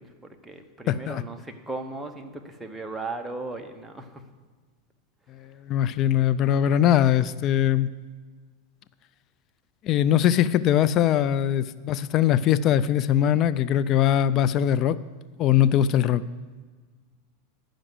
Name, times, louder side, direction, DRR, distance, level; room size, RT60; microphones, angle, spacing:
voice 1, 0.0-4.2, right 2 dB, 5° right, 3 dB, 0.9 m, -37 dB
voice 2, 0.9-1.2 5.3-7.9 9.8-15.0 15.4-16.2, left 10 dB, 40° left, 16 dB, 0.3 m, -21 dB
11.0 x 5.1 x 7.8 m, 1.4 s
supercardioid pair, 120°, 0 cm